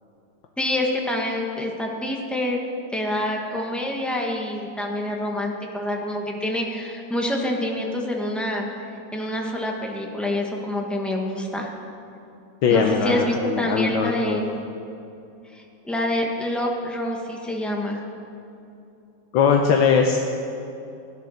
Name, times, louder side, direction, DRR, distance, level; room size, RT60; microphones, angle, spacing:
voice 1, 0.6-2.6 2.9-11.7 12.7-14.4 15.5-18.0, left 1 dB, ahead, -1 dB, 1.3 m, -26 dB
voice 2, 12.6-14.4 19.3-20.2, left 6 dB, 85° left, 2 dB, 1.6 m, -20 dB
16.5 x 10.5 x 6.5 m, 2.8 s
omnidirectional pair, 2.0 m